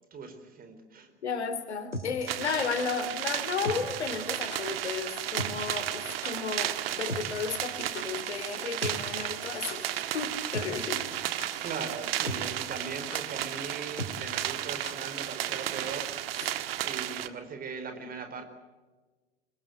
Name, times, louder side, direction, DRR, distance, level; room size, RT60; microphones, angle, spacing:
voice 1, 0.1-1.1 11.1-11.2 11.6-16.1 16.8-18.4, right 5 dB, 25° right, 8 dB, 4.4 m, -39 dB
voice 2, 1.2-11.0 11.3-11.7 16.4-16.7, left 5 dB, 70° left, 11 dB, 3.0 m, -34 dB
sound 1, 1.9-2.9 3.6-4.3 4.5-4.8 5.1-5.2 5.4-5.7 5.9-6.0 6.2-6.3 7.1-8.3 8.5-8.6 8.8-9.4 9.7-9.8 10.5-10.9 11.1-11.7 12.0-12.1 12.3-12.6 12.8-12.9 13.1-13.2 14.0-15.2 15.4-15.5, equal, 90° left, 3.2 m, -37 dB
sound 2, 2.3-17.3, right 12 dB, 55° right, 1.7 m, -34 dB
26.0 x 22.0 x 8.2 m, 1.3 s
figure-of-eight pair, 90°, 34 cm